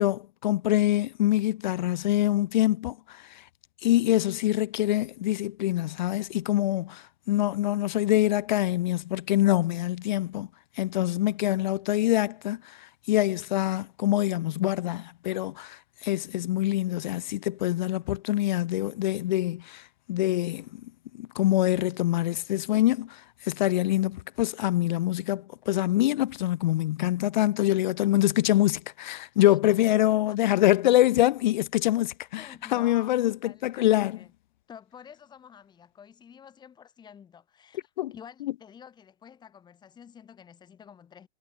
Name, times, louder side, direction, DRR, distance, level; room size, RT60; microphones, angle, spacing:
voice 1, 0.0-3.0 3.8-7.0 7.3-10.5 10.8-12.6 13.1-19.8 20.1-20.7 21.2-23.2 23.4-34.2 38.0-38.1, left 14 dB, 40° left, 0.9 m, -25 dB
voice 2, 29.5-30.4 32.4-34.3 34.7-41.3, left 8 dB, 10° left, 5.5 m, -50 dB
hypercardioid pair, 155°, 34 cm